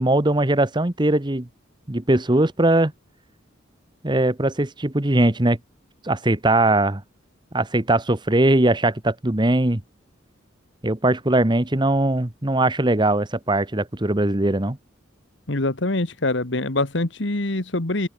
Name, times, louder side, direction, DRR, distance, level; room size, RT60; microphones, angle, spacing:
voice 1, 0.0-1.5 1.9-2.9 4.0-5.6 6.0-7.0 7.5-9.8 10.8-14.8, right 1 dB, 25° right, 1.2 m, -20 dB
voice 2, 15.5-18.1, left 2 dB, 65° left, 1.8 m, -24 dB
open air
head